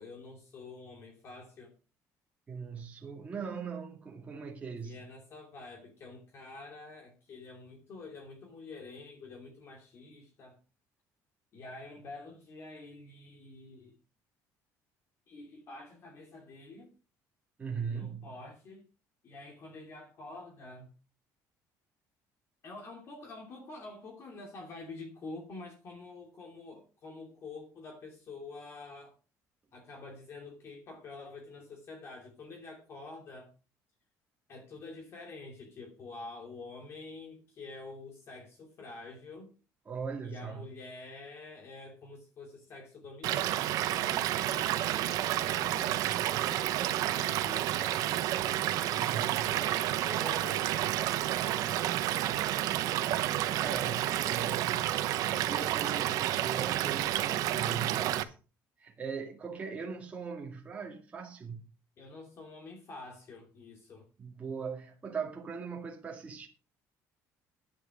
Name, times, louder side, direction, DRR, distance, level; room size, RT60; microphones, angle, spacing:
voice 1, 0.0-1.7 4.8-10.6 11.5-14.0 15.3-16.9 17.9-18.9 19.2-20.9 22.6-29.2 29.7-33.5 34.5-39.5 40.2-45.1 45.4-46.1 46.4-48.3 48.9-51.9 62.0-64.1, left 3 dB, 45° left, 2.7 m, -47 dB
voice 2, 2.5-5.0 17.6-18.3 39.9-40.7 49.0-49.7 52.8-58.3 58.8-61.6 64.2-66.5, right 6 dB, 20° right, 2.1 m, -40 dB
Stream / Liquid, 43.2-58.2, right 13 dB, 70° right, 1.0 m, -30 dB
10.0 x 10.0 x 5.0 m
cardioid pair, 145°, 6 cm